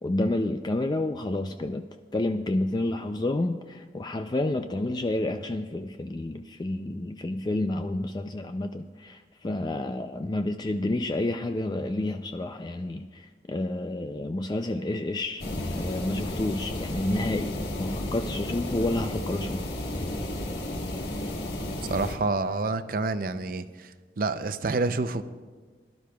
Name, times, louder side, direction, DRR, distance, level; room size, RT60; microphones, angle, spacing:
voice 1, 0.0-1.9 2.1-15.4 15.7-19.7, left 2 dB, 25° left, 0.4 m, -30 dB
sound 1, 15.4-22.2, left 1 dB, 65° left, 1.4 m, -32 dB
voice 2, 21.9-23.6 24.2-25.2, right 3 dB, 50° right, 0.5 m, -27 dB
22.0 x 12.0 x 2.3 m
head